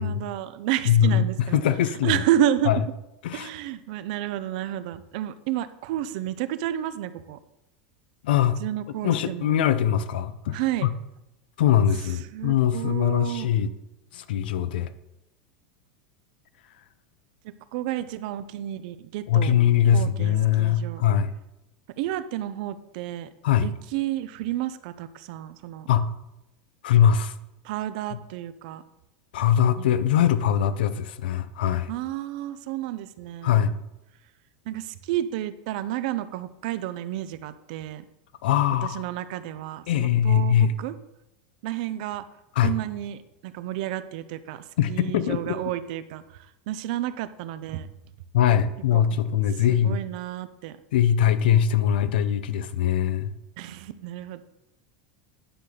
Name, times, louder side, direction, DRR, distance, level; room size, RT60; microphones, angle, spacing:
voice 1, 0.0-1.6 2.0-2.7 3.3-7.4 8.6-9.5 10.5-10.9 12.0-13.5 17.7-19.6 19.9-21.0 22.0-23.3 23.6-25.9 27.6-28.8 29.8-29.9 31.9-33.8 34.7-38.0 38.8-40.9 41.6-42.2 42.6-47.9 48.9-49.0 49.5-50.8 53.6-54.4, right 12 dB, 60° right, 13 dB, 0.6 m, -31 dB
voice 2, 0.9-1.2 1.5-2.2 2.7-2.8 3.2-3.5 8.2-8.6 9.0-10.9 11.6-13.7 14.1-14.9 19.3-21.3 23.4-23.7 25.9-26.1 26.8-27.3 29.3-31.9 33.4-33.8 38.4-39.0 39.9-40.8 42.6-42.7 44.8-45.5 48.3-50.0 50.9-53.3, left 9 dB, 85° left, 13 dB, 0.7 m, -22 dB
10.0 x 4.0 x 6.6 m, 0.91 s
supercardioid pair, 145°, 5 cm